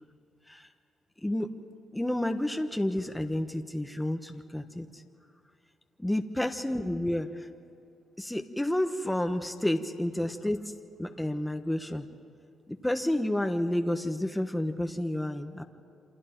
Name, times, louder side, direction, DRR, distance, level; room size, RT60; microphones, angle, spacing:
voice 1, 1.2-1.5 1.9-5.0 6.0-7.5 8.2-10.7 11.0-12.1 12.7-15.6, left 1 dB, 5° left, 5 dB, 1.1 m, -30 dB
28.0 x 26.0 x 4.6 m, 2.6 s
cardioid pair, 90°, 0 cm